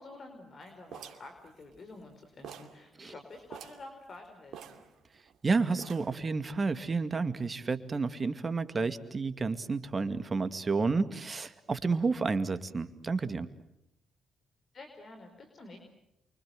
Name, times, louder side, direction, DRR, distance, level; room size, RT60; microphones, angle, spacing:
voice 1, 0.0-4.8 14.7-15.8, left 2 dB, 50° left, 5 dB, 4.8 m, -49 dB
sound 1, 0.9-2.1 2.4-2.8 3.1-3.2 3.5-3.9 4.5-5.4 5.8-6.3, right 8 dB, 70° right, 2.4 m, -47 dB
voice 2, 5.4-13.5, right 4 dB, 40° right, 11 dB, 2.2 m, -30 dB
29.0 x 24.5 x 7.9 m, 0.83 s
hypercardioid pair, 50°, 0 cm